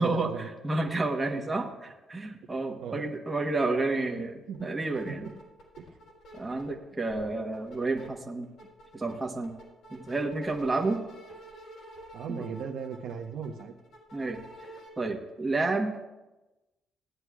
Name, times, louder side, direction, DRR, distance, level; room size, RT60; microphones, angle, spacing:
voice 1, 0.0-0.5 1.3-1.4 2.8-3.0 4.0-4.7 5.1-5.3 5.8-5.9 12.1-13.7, right 6 dB, 75° right, 3 dB, 1.0 m, -38 dB
voice 2, 0.6-1.7 2.1-5.3 6.3-8.5 8.9-9.5 9.9-11.0 12.3-12.4 14.1-14.4 15.0-16.1, right 3 dB, 15° right, 1 dB, 1.1 m, -30 dB
sound 1, 4.5-4.6 4.9-6.8 7.1-8.1 8.4-14.9, right 1 dB, 70° left, 3.9 m, -49 dB
17.0 x 9.6 x 2.4 m, 1.1 s
cardioid pair, 140°, 0 cm